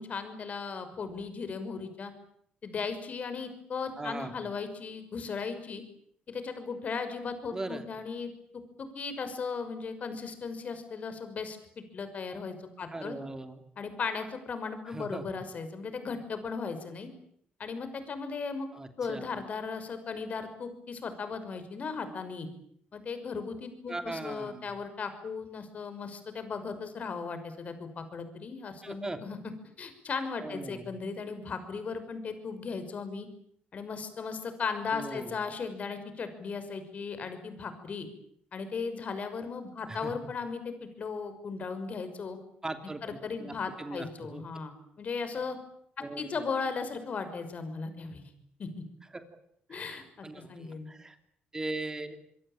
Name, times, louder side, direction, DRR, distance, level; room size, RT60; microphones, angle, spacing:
voice 1, 0.0-2.1 2.6-5.8 6.3-8.3 8.8-13.2 13.8-17.1 17.6-18.7 19.0-22.5 22.9-29.4 29.8-33.3 33.7-38.1 38.5-42.4 43.0-45.6 46.2-48.3 48.6-48.8 49.7-50.9, left 5 dB, 45° left, 10 dB, 6.0 m, -37 dB
voice 2, 4.0-4.3 7.5-7.8 12.9-13.6 14.9-15.2 18.7-19.2 23.9-24.6 28.8-29.2 30.4-30.8 34.9-35.4 39.9-40.1 42.6-44.4 46.0-46.4 49.1-49.2 49.7-51.2 51.5-52.2, right 2 dB, 15° right, 8 dB, 2.9 m, -39 dB
26.5 x 22.5 x 8.9 m, 0.68 s
cardioid pair, 100°, 3 cm